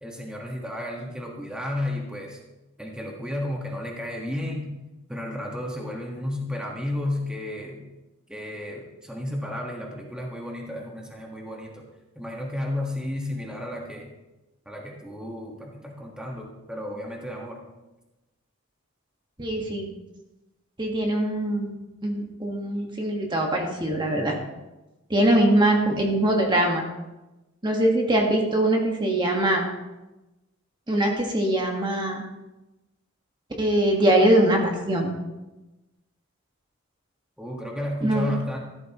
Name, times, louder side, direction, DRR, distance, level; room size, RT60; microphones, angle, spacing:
voice 1, 0.0-2.4 2.8-4.7 5.1-7.9 8.3-11.9 12.1-14.1 14.6-17.6 37.4-38.6, left 1 dB, 5° right, -1 dB, 1.5 m, -32 dB
voice 2, 19.4-19.9 20.8-21.7 22.0-24.4 25.1-26.9 27.6-29.7 30.9-32.2 33.6-35.2 38.0-38.3, right 1 dB, 20° right, 0 dB, 1.5 m, -22 dB
14.5 x 13.0 x 3.0 m, 1.0 s
head